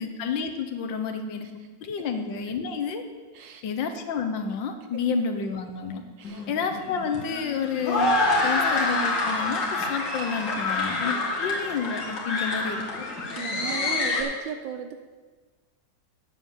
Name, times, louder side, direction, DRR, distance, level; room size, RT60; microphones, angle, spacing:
voice 1, 0.0-3.0 3.6-6.0 6.5-8.1 8.4-12.8, left 5 dB, 90° left, 6 dB, 1.7 m, -30 dB
sound 1, 6.2-14.2, left 2 dB, 70° left, 2.4 m, -27 dB
voice 2, 13.4-15.0, right 7 dB, 80° right, 7 dB, 1.3 m, -35 dB
9.6 x 7.3 x 7.1 m, 1.4 s
omnidirectional pair, 2.0 m